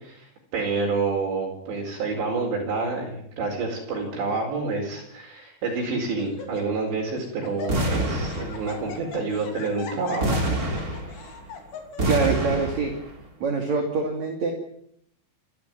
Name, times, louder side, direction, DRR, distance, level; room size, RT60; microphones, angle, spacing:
voice 1, 0.0-10.4, right 3 dB, 70° right, -1 dB, 6.9 m, -28 dB
Laughter, 3.9-4.3 5.0-5.1 5.6-5.9 6.2-6.9 7.2-12.2, left 5 dB, 70° left, 5.1 m, -40 dB
sound 1, 7.7-9.0 10.2-11.5 12.0-13.1, right 1 dB, 20° right, 3.5 m, -26 dB
voice 2, 12.1-12.9 13.4-14.5, right 4 dB, 45° right, 3 dB, 3.5 m, -24 dB
28.5 x 14.0 x 9.5 m, 0.71 s
omnidirectional pair, 5.2 m